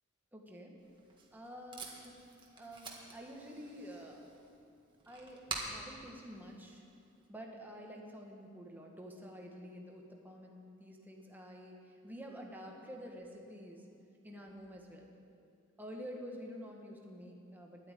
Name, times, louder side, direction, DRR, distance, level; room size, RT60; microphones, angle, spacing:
voice 1, 0.3-0.8 1.3-4.2 5.0-6.8 7.3-13.9 14.2-15.1 15.8-17.9, equal, 10° right, 0 dB, 1.6 m, -49 dB
Packing tape duct tape, 0.8-7.3, right 3 dB, 25° right, 1.7 m, -48 dB
11.0 x 9.2 x 9.2 m, 2.5 s
head